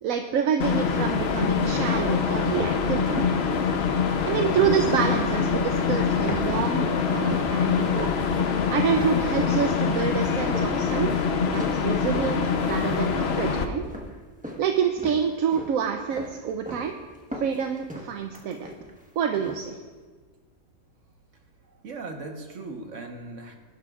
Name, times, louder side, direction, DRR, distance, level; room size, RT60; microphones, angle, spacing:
voice 1, 0.0-3.3 4.2-8.1 8.7-13.8 14.6-17.0 17.3-18.7 19.2-19.8, right 7 dB, 75° right, 5 dB, 1.1 m, -27 dB
sound 1, 0.6-13.7, left 6 dB, 55° left, 0.9 m, -24 dB
sound 2, 2.5-7.0 7.3-8.1 8.4-14.7 15.0-15.8 16.1-16.9 17.1-19.0 19.3-19.7, equal, 5° right, 1.1 m, -38 dB
voice 2, 21.6-23.6, right 3 dB, 60° right, 3 dB, 1.6 m, -38 dB
20.5 x 11.5 x 2.4 m, 1.5 s
omnidirectional pair, 1.5 m